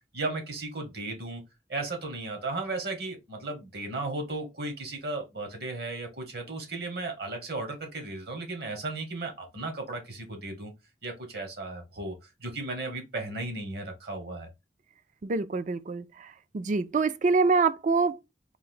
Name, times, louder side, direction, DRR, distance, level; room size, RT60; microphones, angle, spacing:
voice 1, 0.1-1.4 1.7-10.7 11.0-14.5, right 2 dB, 60° right, 1.5 m, -35 dB
voice 2, 15.2-16.0 16.5-18.2, right 4 dB, 45° right, 0.4 m, -25 dB
4.6 x 2.6 x 3.8 m
head